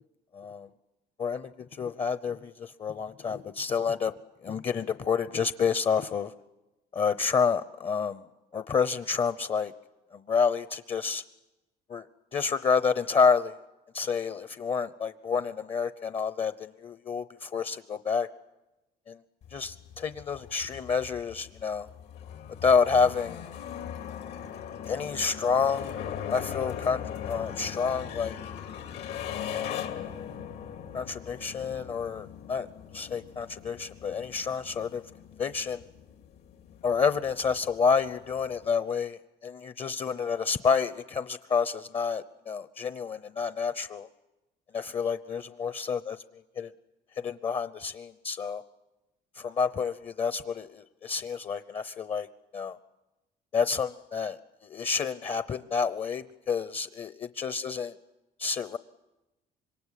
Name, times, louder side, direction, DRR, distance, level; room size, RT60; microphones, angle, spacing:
voice 1, 0.3-0.7 1.2-4.1 4.4-6.3 6.9-8.2 8.5-9.7 10.1-11.2 11.9-12.1 12.3-13.5 13.9-18.3 19.1-19.2 19.5-21.9 22.6-23.5 24.9-26.0 26.3-28.4 29.5-29.8 30.9-32.7 32.9-35.0 35.4-35.8 36.8-44.1 44.7-46.2 46.6-46.7 47.2-48.6 49.4-52.3 52.5-52.8 53.5-57.1 57.4-57.9 58.4-58.8, left 5 dB, 35° left, 13 dB, 0.8 m, -29 dB
sound 1, 19.4-38.7, left 9 dB, 75° left, 2.9 m, -40 dB
26.5 x 22.5 x 8.4 m, 1.0 s
cardioid pair, 110°, 17 cm